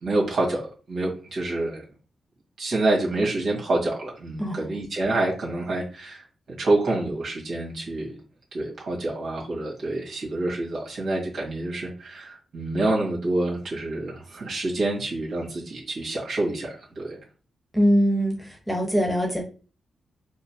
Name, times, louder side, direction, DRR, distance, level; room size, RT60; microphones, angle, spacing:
voice 1, 0.0-1.8 2.6-8.1 8.5-17.2, right 2 dB, 65° right, -3 dB, 1.8 m, -27 dB
voice 2, 17.7-19.4, equal, 5° left, 1 dB, 1.2 m, -22 dB
4.5 x 2.2 x 2.9 m, 0.37 s
cardioid pair, 65°, 0 cm